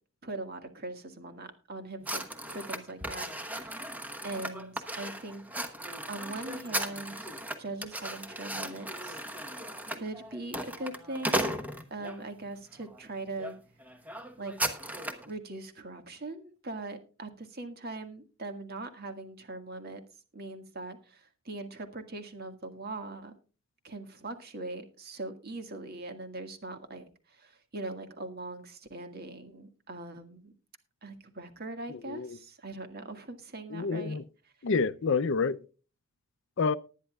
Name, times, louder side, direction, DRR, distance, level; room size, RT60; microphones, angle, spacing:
voice 1, 0.2-2.2 2.5-3.7 4.2-5.4 6.1-7.3 7.6-11.6 11.9-13.5 14.4-14.9 15.3-20.0 20.3-23.3 23.8-30.5 31.0-34.2, right 2 dB, 45° right, 1.7 m, -41 dB
sound 1, 2.0-12.2 12.8-13.0 13.4-13.5 13.8-15.3, right 1 dB, 5° right, 1.0 m, -36 dB
voice 2, 31.9-32.4 33.7-34.2 34.6-35.6 36.6-36.7, left 4 dB, 60° left, 0.5 m, -28 dB
19.5 x 10.0 x 2.3 m
head